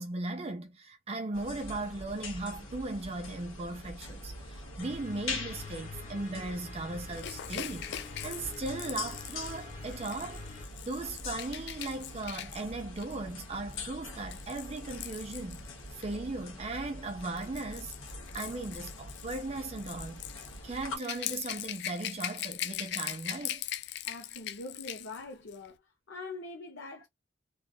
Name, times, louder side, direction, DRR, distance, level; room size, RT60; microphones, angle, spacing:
voice 1, 0.0-10.4 10.8-15.7 15.9-23.6, right 2 dB, 30° right, 0.5 m, -38 dB
sound 1, 1.3-21.0, left 2 dB, 90° left, 1.2 m, -44 dB
sound 2, 4.8-10.7, left 4 dB, 35° left, 1.0 m, -47 dB
Rattle / Rattle (instrument), 7.1-16.2 17.1-25.2 25.5-25.7, left 12 dB, 55° left, 0.3 m, -41 dB
voice 2, 24.0-25.8 26.1-27.1, left 2 dB, 70° left, 0.8 m, -43 dB
3.1 x 2.4 x 2.3 m
head